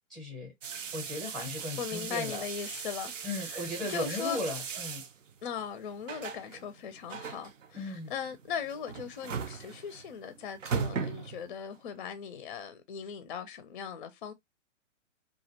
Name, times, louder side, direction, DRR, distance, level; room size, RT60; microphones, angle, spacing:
voice 1, 0.1-0.5 0.9-2.4 3.2-5.0 7.8-8.1, left 1 dB, ahead, 0.7 m, -36 dB
sound 1, 0.6-11.8, right 6 dB, 75° right, 0.6 m, -39 dB
voice 2, 1.8-4.4 5.4-14.3, left 8 dB, 45° left, 0.4 m, -39 dB
2.4 x 2.1 x 2.7 m
hypercardioid pair, 130°, 38 cm